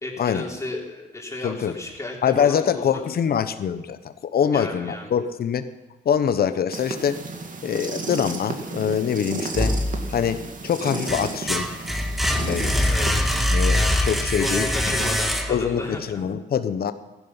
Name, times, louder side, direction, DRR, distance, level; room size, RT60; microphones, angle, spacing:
voice 1, 0.0-3.0 4.4-5.1 12.8-13.3 14.4-16.2, left 2 dB, 15° left, -1 dB, 3.6 m, -33 dB
voice 2, 1.4-1.7 2.2-5.6 6.0-7.2 7.6-9.8 10.1-11.7 12.4-12.8 13.5-14.6 15.0-15.1 15.5-16.9, left 8 dB, 50° left, 11 dB, 1.0 m, -24 dB
sound 1, 6.7-13.4, right 3 dB, 40° right, 2.2 m, -33 dB
sound 2, 9.5-10.4 10.8-15.8, left 1 dB, ahead, 1.7 m, -23 dB
15.5 x 11.0 x 5.7 m, 1.2 s
cardioid pair, 90°, 20 cm